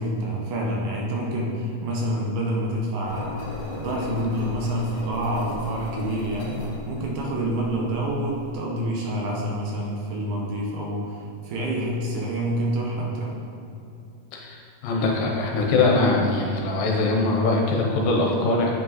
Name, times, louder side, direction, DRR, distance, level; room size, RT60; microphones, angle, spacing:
voice 1, 0.0-3.3 3.7-6.6 6.9-11.1 11.4-13.4, right 1 dB, 75° right, -2 dB, 2.5 m, -27 dB
Engine, 3.1-8.5, left 2 dB, 60° left, 2.3 m, -36 dB
voice 2, 14.3-18.8, left 3 dB, 75° left, 0 dB, 2.4 m, -22 dB
8.1 x 5.1 x 4.1 m, 2.7 s
omnidirectional pair, 4.2 m